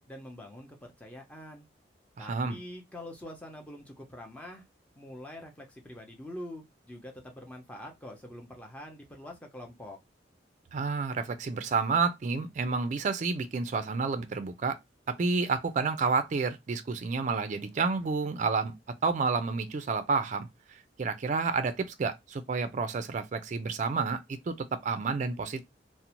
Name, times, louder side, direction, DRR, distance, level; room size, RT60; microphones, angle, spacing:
voice 1, 0.1-1.7 2.2-4.6 5.0-10.0, left 1 dB, 10° left, 0.6 m, -45 dB
voice 2, 2.2-2.6 10.7-14.8 15.1-18.7 19.0-20.5 21.0-25.7, right 4 dB, 45° right, 0.4 m, -30 dB
2.6 x 2.0 x 2.9 m
head